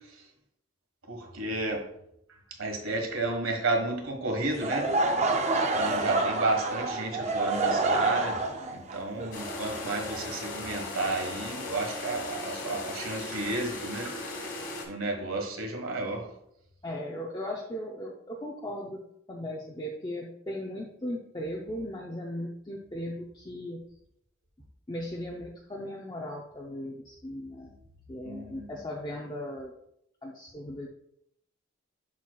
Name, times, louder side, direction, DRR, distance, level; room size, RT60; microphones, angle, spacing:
voice 1, 1.1-1.9 2.6-4.9 5.7-14.5 14.9-16.3 28.2-28.7, right 2 dB, 80° right, 3 dB, 1.4 m, -32 dB
Laughter / Crowd, 4.5-10.4, right 2 dB, 30° right, 0.5 m, -28 dB
sound 1, 9.3-14.8, left 2 dB, 55° left, 1.7 m, -37 dB
voice 2, 16.8-19.0 19.3-23.8 24.9-27.8 28.1-29.7 30.2-30.9, left 1 dB, 20° left, -1 dB, 0.5 m, -37 dB
7.2 x 6.2 x 2.3 m, 0.74 s
head